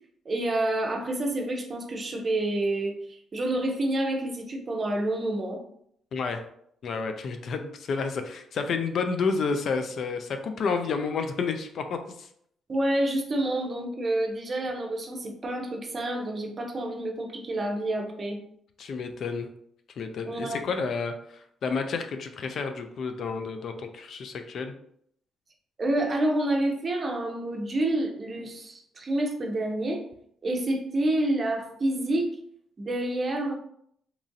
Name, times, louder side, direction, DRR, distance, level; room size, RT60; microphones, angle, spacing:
voice 1, 0.3-5.6 12.7-18.4 20.2-20.7 25.8-30.0 30.4-32.3 32.8-33.5, right 1 dB, 35° right, 3 dB, 0.6 m, -28 dB
voice 2, 6.1-6.4 6.8-12.3 18.8-19.5 20.0-24.7, left 5 dB, 60° left, 7 dB, 0.3 m, -30 dB
2.9 x 2.4 x 2.6 m, 0.69 s
cardioid pair, 90°, 0 cm